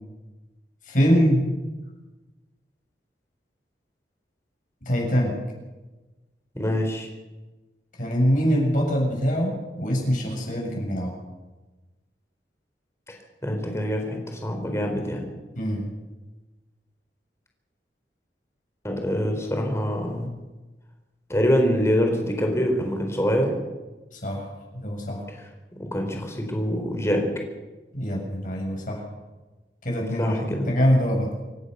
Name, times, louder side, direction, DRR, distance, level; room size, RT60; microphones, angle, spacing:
voice 1, 0.9-1.5 4.9-5.3 8.0-11.1 15.6-15.9 24.1-24.5 24.7-25.2 27.9-29.0 29.8-31.3, equal, 50° left, 0 dB, 7.7 m, -23 dB
voice 2, 6.5-7.1 13.1-15.2 18.8-20.3 21.3-23.6 25.7-27.2 30.2-30.7, equal, 15° left, 3 dB, 4.2 m, -25 dB
27.5 x 15.0 x 6.9 m, 1.2 s
head